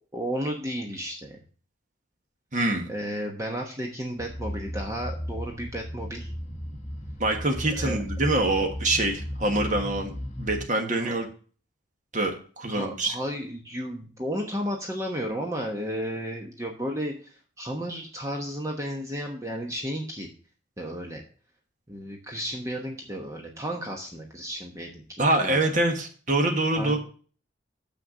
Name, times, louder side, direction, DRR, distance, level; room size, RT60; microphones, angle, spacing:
voice 1, 0.1-1.4 2.9-6.3 7.7-8.0 11.0-11.2 12.7-20.3 20.8-21.2 21.9-25.9 26.7-27.0, equal, 15° right, 1 dB, 1.1 m, -33 dB
voice 2, 2.5-2.9 7.2-10.1 10.4-11.3 12.1-13.1 25.2-27.0, right 2 dB, 40° right, 3 dB, 1.5 m, -25 dB
sound 1, 4.2-10.6, equal, 35° left, 1.6 m, -35 dB
7.0 x 6.5 x 6.0 m, 0.40 s
head